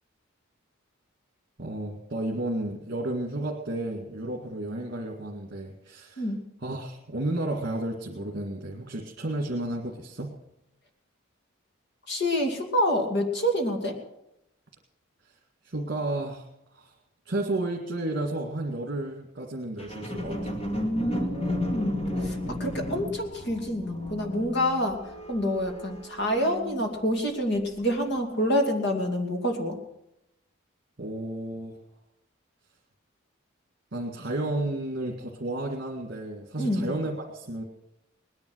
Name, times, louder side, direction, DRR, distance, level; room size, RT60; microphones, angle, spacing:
voice 1, 1.6-6.3 6.6-10.4 15.6-16.5 16.7-16.9 17.3-20.5 31.0-31.8 33.9-37.6, right 1 dB, 50° right, 0 dB, 1.9 m, -32 dB
voice 2, 12.1-13.9 20.7-25.0 25.3-29.8 36.6-36.9, equal, 55° left, 3 dB, 2.6 m, -27 dB
sound 1, 19.8-27.2 27.8-27.9, left 1 dB, 30° left, 2.1 m, -34 dB
19.5 x 10.5 x 6.3 m, 0.82 s
head